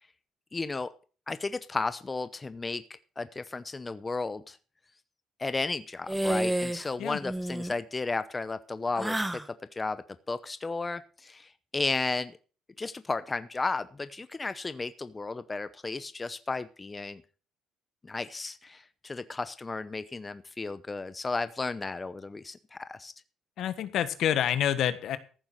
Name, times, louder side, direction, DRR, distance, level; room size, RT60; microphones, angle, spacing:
voice 1, 0.5-0.9 1.3-4.6 5.4-9.4 9.7-12.4 12.8-17.2 18.0-23.1, left 3 dB, 25° left, 13 dB, 0.8 m, -34 dB
sound 1, 6.1-6.9 7.2-7.7 9.0-9.5, right 1 dB, 10° right, 1.1 m, -30 dB
voice 2, 23.6-25.2, left 10 dB, 70° left, 12 dB, 1.4 m, -27 dB
15.0 x 7.1 x 6.4 m, 0.38 s
supercardioid pair, 80°, 0 cm